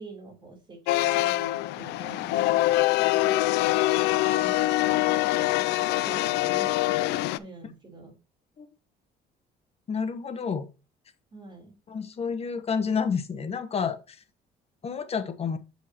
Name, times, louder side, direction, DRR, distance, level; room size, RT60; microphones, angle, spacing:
voice 1, 0.0-2.6 3.1-4.0 4.3-7.1 7.4-8.1 11.3-11.8, right 3 dB, 25° right, 1 dB, 3.6 m, -46 dB
sound 1, 0.9-7.4, left 17 dB, 85° left, 0.4 m, -24 dB
voice 2, 9.9-10.7 11.9-14.2 14.8-15.6, left 6 dB, 35° left, 10 dB, 1.1 m, -29 dB
7.9 x 5.5 x 2.9 m, 0.31 s
cardioid pair, 110°, 17 cm